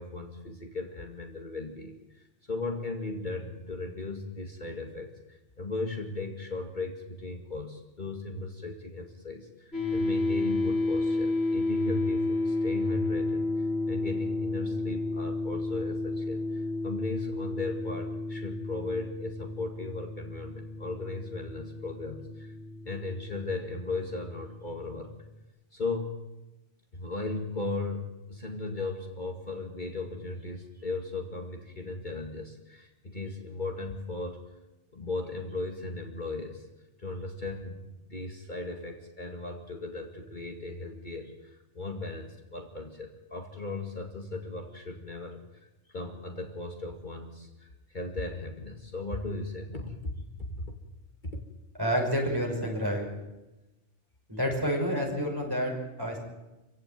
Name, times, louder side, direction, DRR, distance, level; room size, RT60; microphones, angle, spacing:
voice 1, 0.0-22.5 22.8-25.1 25.7-26.3 26.9-34.5 34.9-36.7 37.0-50.1 50.4-50.8 51.2-51.4, left 3 dB, 40° left, 3 dB, 2.2 m, -37 dB
sound 1, 9.7-25.0, left 2 dB, 55° left, 3.5 m, -31 dB
voice 2, 51.8-53.1 54.3-56.2, equal, 20° right, 0 dB, 6.1 m, -29 dB
27.0 x 16.5 x 9.1 m, 1.1 s
omnidirectional pair, 1.2 m